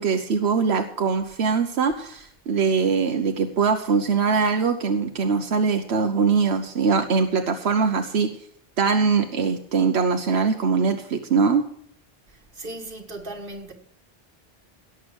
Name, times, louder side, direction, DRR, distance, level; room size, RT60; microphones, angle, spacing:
voice 1, 0.0-8.3 8.8-11.6, right 5 dB, 85° right, 1.2 m, -22 dB
voice 2, 12.3-13.7, right 1 dB, 55° right, 2.1 m, -37 dB
17.5 x 7.2 x 6.1 m
omnidirectional pair, 1.0 m